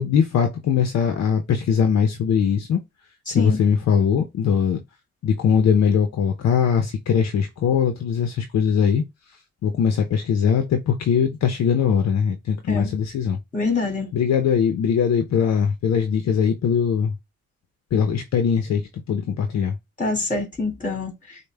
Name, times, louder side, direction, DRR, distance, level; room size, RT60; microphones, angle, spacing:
voice 1, 0.0-2.8 3.3-4.8 5.2-9.0 9.6-13.4 14.1-17.1 17.9-19.7, left 7 dB, 60° left, 0.7 m, -21 dB
voice 2, 3.3-3.6 12.7-12.9 13.5-14.1 20.0-21.1, left 3 dB, 25° left, 2.5 m, -25 dB
5.0 x 2.1 x 3.3 m
cardioid pair, 90°, 30 cm